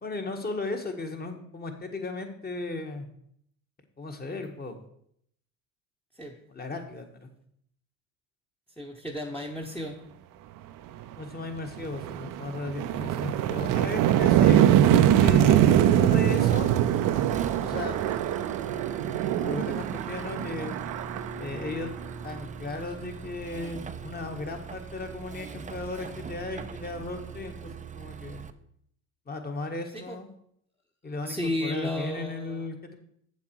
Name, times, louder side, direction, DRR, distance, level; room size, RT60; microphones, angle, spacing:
voice 1, 0.0-3.1 4.0-4.8 6.5-7.3 11.2-14.7 15.1-16.7 17.6-18.1 19.4-20.8 21.4-21.9 22.2-28.4 29.3-30.3 31.0-32.9, left 3 dB, 25° left, 5 dB, 1.5 m, -36 dB
voice 2, 8.8-10.0 29.9-30.2 31.2-32.6, left 1 dB, 5° left, 0 dB, 1.1 m, -33 dB
sound 1, 11.0-11.1 11.6-22.4, right 11 dB, 60° right, 0.6 m, -23 dB
Accelerating revving vroom, 15.3-28.5, right 5 dB, 20° right, 0.5 m, -41 dB
7.5 x 7.3 x 4.7 m, 0.68 s
supercardioid pair, 80°, 37 cm